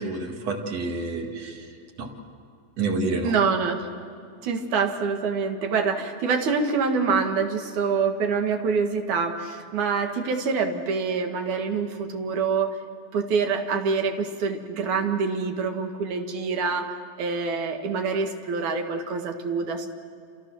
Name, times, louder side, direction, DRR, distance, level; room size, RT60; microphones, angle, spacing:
voice 1, 0.0-1.7 2.0-2.1 2.8-3.3, right 3 dB, 60° right, 2 dB, 3.3 m, -28 dB
voice 2, 3.2-3.8 4.4-12.8 13.1-16.9 17.2-19.9, right 5 dB, 85° right, 4 dB, 3.2 m, -26 dB
29.0 x 27.5 x 6.3 m, 2.3 s
omnidirectional pair, 3.3 m